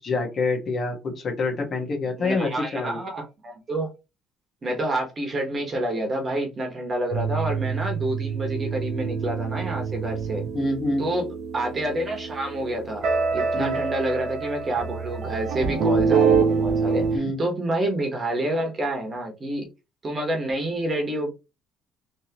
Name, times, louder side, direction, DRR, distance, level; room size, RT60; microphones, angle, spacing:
voice 1, 0.0-3.0 10.5-11.1 13.5-13.8 17.1-17.4, left 3 dB, 40° left, 1.3 m, -26 dB
voice 2, 2.2-3.9 4.6-10.4 11.0-11.2 11.5-13.0 13.3-19.6 20.0-21.3, right 1 dB, 30° right, 1.2 m, -28 dB
sound 1, 7.1-17.2, right 5 dB, 50° right, 0.8 m, -26 dB
3.5 x 3.0 x 2.9 m
cardioid pair, 125°, 0 cm